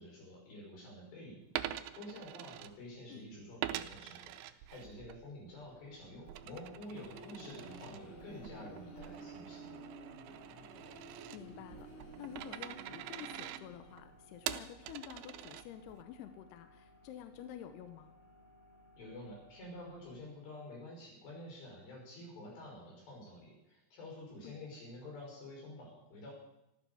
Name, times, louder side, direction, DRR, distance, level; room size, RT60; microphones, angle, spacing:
voice 1, 0.0-9.8 19.0-26.3, left 1 dB, 60° left, -2 dB, 7.5 m, -49 dB
Coin (dropping), 1.4-3.2 3.6-5.2 5.6-16.0, right 13 dB, 85° right, 3.3 m, -45 dB
sound 1, 5.5-20.1, left 1 dB, 15° left, 2.0 m, -63 dB
sound 2, 6.7-14.2, right 2 dB, 35° left, 7.3 m, -52 dB
voice 2, 11.3-11.9 12.2-18.1 24.4-24.6, left 10 dB, 75° left, 8 dB, 2.5 m, -49 dB
13.5 x 13.5 x 7.0 m, 0.89 s
omnidirectional pair, 5.6 m